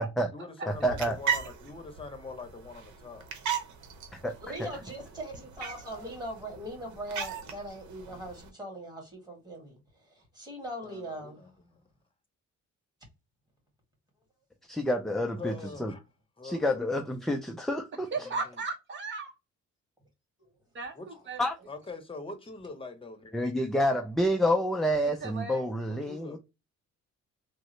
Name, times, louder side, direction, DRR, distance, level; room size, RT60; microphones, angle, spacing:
voice 1, 0.3-3.2 10.8-11.8 15.4-16.0 16.4-17.1 18.2-18.4 21.0-21.1 21.7-23.5 25.9-26.4, left 3 dB, 20° left, 0.8 m, -43 dB
sound 1, 0.7-8.5, right 7 dB, 70° right, 0.9 m, -38 dB
voice 2, 0.8-1.2 4.2-4.7 14.7-15.9 16.4-18.1 21.4-21.5 23.3-26.4, equal, ahead, 0.3 m, -28 dB
voice 3, 4.4-9.8 10.3-11.4, right 1 dB, 15° right, 2.0 m, -40 dB
voice 4, 18.1-19.3 20.7-21.4 25.0-25.8, right 4 dB, 40° right, 0.9 m, -36 dB
3.6 x 2.1 x 3.0 m
cardioid pair, 90°, 30 cm